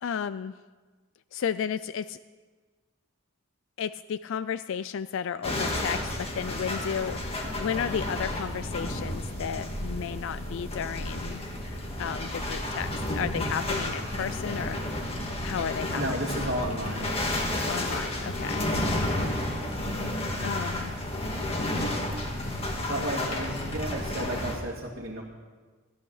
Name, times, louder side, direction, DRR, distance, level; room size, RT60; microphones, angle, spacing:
voice 1, 0.0-0.5 1.3-2.2 3.8-11.4 12.0-15.1 15.4-16.0 17.7-18.7 20.4-20.9, left 7 dB, 60° left, 14 dB, 0.3 m, -33 dB
sound 1, 5.4-24.6, left 1 dB, 30° left, 1.9 m, -31 dB
voice 2, 15.9-17.3 22.9-25.2, right 1 dB, 50° right, -5 dB, 2.1 m, -33 dB
14.5 x 11.5 x 6.4 m, 1.4 s
head